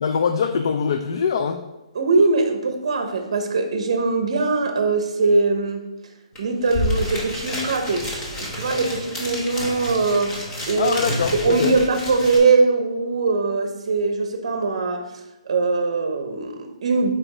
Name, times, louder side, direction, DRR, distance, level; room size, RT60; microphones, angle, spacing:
voice 1, 0.0-1.6 10.8-11.7, left 6 dB, 45° left, 7 dB, 0.3 m, -23 dB
voice 2, 1.9-5.9 6.4-11.0 11.3-17.1, right 3 dB, 55° right, 7 dB, 0.7 m, -21 dB
sound 1, 6.4-6.5 6.6-12.4, left 1 dB, 15° left, 0.9 m, -29 dB
5.0 x 4.4 x 4.9 m, 1.0 s
hypercardioid pair, 175°, 3 cm